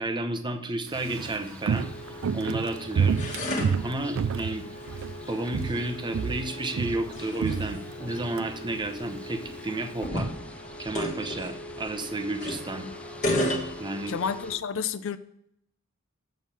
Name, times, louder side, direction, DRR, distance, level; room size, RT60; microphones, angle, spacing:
voice 1, 0.0-1.9 2.3-3.2 3.8-4.7 5.3-10.3 10.8-12.9 13.8-14.1, right 2 dB, 20° right, 6 dB, 0.8 m, -32 dB
sound 1, 0.9-14.6, left 1 dB, 5° left, 0.4 m, -48 dB
Walk footsteps, 0.9-5.2 5.5-5.9 6.1-8.5 8.8-8.9, right 6 dB, 65° right, 0.3 m, -29 dB
sound 2, 1.7-14.6, left 1 dB, 35° left, 1.5 m, -35 dB
voice 2, 14.1-15.2, left 6 dB, 65° left, 13 dB, 0.5 m, -30 dB
7.2 x 6.4 x 5.7 m, 0.75 s
head